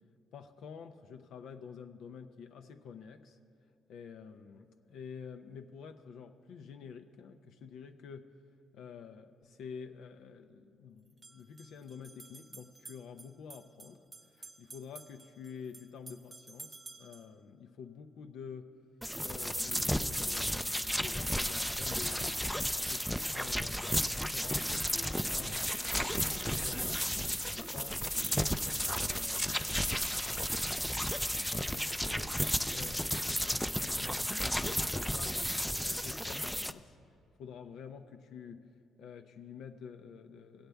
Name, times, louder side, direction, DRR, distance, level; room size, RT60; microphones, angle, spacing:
voice 1, 0.3-3.4 3.9-8.3 8.7-14.0 14.3-18.7 19.2-22.4 22.9-25.7 26.0-28.6 29.0-29.6 30.0-30.4 31.5-32.4 32.6-35.4 35.8-37.0 37.4-38.7 39.0-40.7, left 6 dB, 80° left, 7 dB, 0.4 m, -49 dB
sound 1, 9.4-9.5 11.1-17.3, right 3 dB, 30° right, 0.6 m, -53 dB
sound 2, 19.0-36.7, equal, ahead, 0.3 m, -33 dB
17.0 x 8.0 x 3.4 m, 2.4 s
cardioid pair, 90°, 0 cm